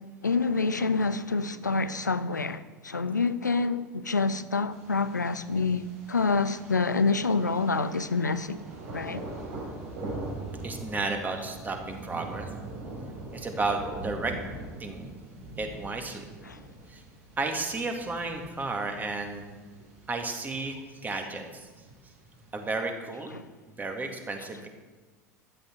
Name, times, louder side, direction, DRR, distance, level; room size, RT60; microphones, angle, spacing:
voice 1, 0.2-8.6 8.9-9.2 16.5-16.6 23.3-23.4, left 4 dB, 85° left, 0.6 m, -27 dB
Thunder, 4.7-22.7, right 2 dB, 55° right, 4.8 m, -42 dB
voice 2, 10.6-12.5 13.3-14.3 14.8-15.1 15.6-16.3 16.9-17.0 17.4-19.6 20.1-21.7 22.5-23.3 23.8-24.7, right 3 dB, 20° right, 2.2 m, -33 dB
15.0 x 11.5 x 4.6 m
figure-of-eight pair, 75°, 9 cm